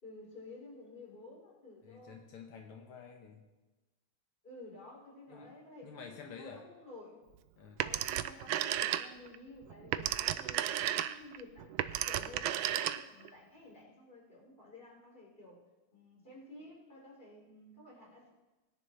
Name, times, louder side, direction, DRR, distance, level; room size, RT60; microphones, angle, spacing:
voice 1, 0.0-2.2 4.4-7.2 7.8-15.6 15.9-18.3, left 2 dB, 25° left, -5 dB, 4.2 m, -52 dB
voice 2, 1.8-3.5 5.3-5.6 5.8-6.6 7.6-7.8, left 6 dB, 80° left, 2 dB, 1.9 m, -50 dB
Telephone, 7.8-9.4 9.7-13.3, right 12 dB, 75° right, 1.3 m, -33 dB
20.0 x 10.5 x 3.3 m, 1.1 s
omnidirectional pair, 2.4 m